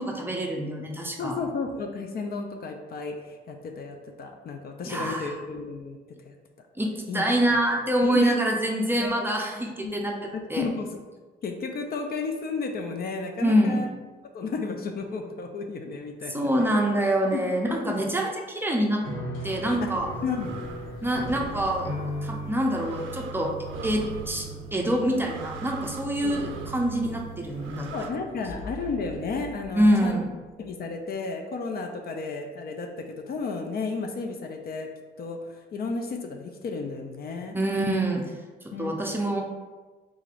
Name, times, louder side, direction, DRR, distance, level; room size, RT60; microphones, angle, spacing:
voice 1, 0.0-1.4 4.8-5.4 6.8-10.7 13.4-13.8 16.3-19.0 19.4-20.1 21.0-21.9 22.2-23.5 23.8-27.9 29.7-30.3 37.5-38.2 38.6-39.4, right 1 dB, 10° right, 0 dB, 0.5 m, -25 dB
voice 2, 1.2-6.0 7.1-7.2 7.5-7.6 8.0-8.4 9.0-9.3 9.8-10.1 10.6-11.0 11.4-13.9 14.3-16.7 17.3-17.4 17.7-18.0 19.8-19.9 20.2-20.6 26.2-26.3 27.9-30.2 30.6-34.9 35.2-37.6 38.7-38.9, left 4 dB, 50° left, 4 dB, 0.4 m, -33 dB
sound 1, 19.0-27.3, left 1 dB, 20° left, 1.4 m, -39 dB
sound 2, 19.1-30.7, right 5 dB, 80° left, 0.8 m, -43 dB
sound 3, 19.7-28.1, right 5 dB, 80° right, 0.4 m, -43 dB
3.7 x 3.1 x 2.5 m, 1.3 s
cardioid pair, 90°, 20 cm